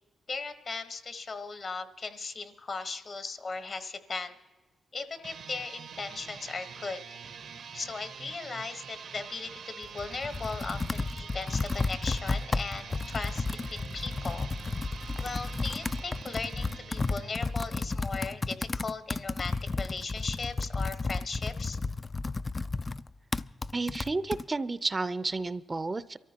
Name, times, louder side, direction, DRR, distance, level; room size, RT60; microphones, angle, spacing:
voice 1, 0.3-4.3 4.9-7.2 7.7-14.5 15.2-21.8, left 4 dB, 55° left, 8 dB, 1.3 m, -38 dB
sound 1, 5.1-17.9, right 6 dB, 75° right, 0.9 m, -45 dB
Computer keyboard, 9.8-24.4, left 3 dB, 35° left, 0.3 m, -33 dB
voice 2, 23.7-26.2, right 3 dB, 30° right, 14 dB, 0.5 m, -31 dB
23.5 x 14.0 x 2.9 m, 1.2 s
cardioid pair, 65°, 0 cm